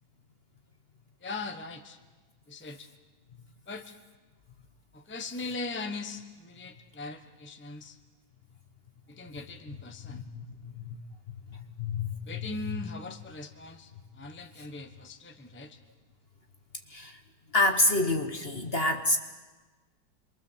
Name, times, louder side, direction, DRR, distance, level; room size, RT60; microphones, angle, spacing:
voice 1, 1.2-2.0 2.5-2.9 3.7-3.9 4.9-8.0 9.1-10.2 12.2-15.8, left 3 dB, 10° left, 6 dB, 1.0 m, -40 dB
voice 2, 10.1-10.4 10.8-11.0 11.3-12.2 12.7-12.8 16.9-17.2 17.5-19.2, left 2 dB, 35° left, 6 dB, 1.3 m, -28 dB
27.0 x 22.5 x 7.4 m, 1.3 s
omnidirectional pair, 1.9 m